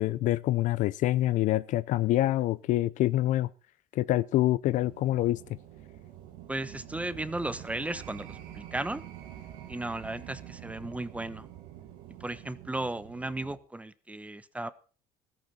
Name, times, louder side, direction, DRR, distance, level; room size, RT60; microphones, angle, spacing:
voice 1, 0.0-3.5 3.9-5.6, left 15 dB, 65° left, 0.6 m, -26 dB
sound 1, 4.7-13.6, right 11 dB, 80° right, 2.4 m, -46 dB
voice 2, 6.5-9.0 9.7-11.5 12.2-14.7, right 2 dB, 10° right, 1.1 m, -35 dB
14.5 x 13.5 x 4.3 m
supercardioid pair, 85°, 14 cm